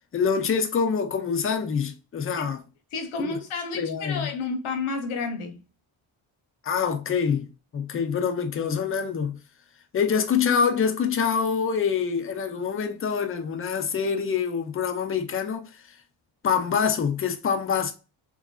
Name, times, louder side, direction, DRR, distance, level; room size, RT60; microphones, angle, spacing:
voice 1, 0.1-2.6 3.2-3.4 3.7-4.3 6.6-7.5 7.7-9.4 9.9-16.0 16.4-17.9, left 6 dB, 30° left, 0.4 m, -25 dB
voice 2, 2.9-5.6, left 4 dB, 75° left, 0.8 m, -31 dB
2.9 x 2.5 x 2.2 m
wide cardioid pair, 145°, 49 cm